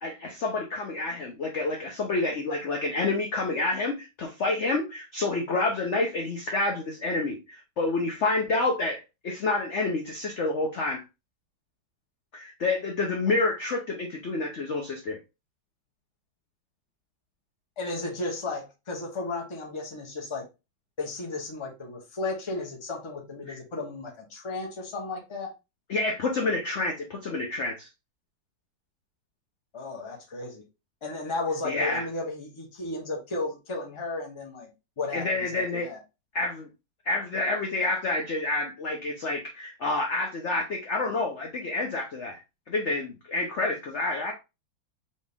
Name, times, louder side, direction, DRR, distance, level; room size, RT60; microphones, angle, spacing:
voice 1, 0.0-11.0 12.3-15.2 23.5-23.6 25.9-27.9 31.6-32.1 35.1-35.9 36.3-36.7 37.0-42.4 42.7-44.3, left 3 dB, 65° left, 0.7 m, -28 dB
voice 2, 17.8-20.5 21.0-25.5 29.7-30.6 31.0-36.0, left 3 dB, 25° left, 0.7 m, -34 dB
4.2 x 3.0 x 3.5 m
omnidirectional pair, 2.2 m